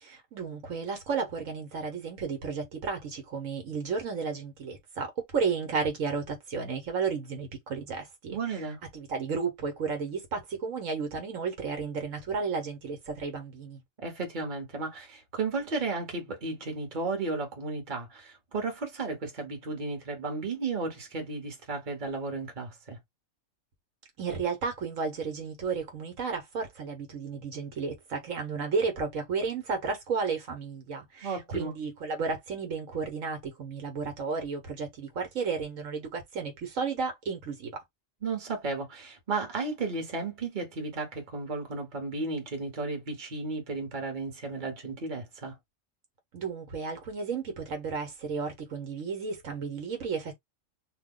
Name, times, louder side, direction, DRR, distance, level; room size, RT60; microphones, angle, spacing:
voice 1, 0.0-8.6 8.9-13.8 24.2-37.7 46.3-50.3, right 5 dB, 75° right, 1.4 m, -33 dB
voice 2, 8.3-8.8 14.0-23.0 31.2-31.7 38.2-45.5, right 3 dB, 40° right, 1.2 m, -34 dB
2.8 x 2.2 x 3.6 m
omnidirectional pair, 1.4 m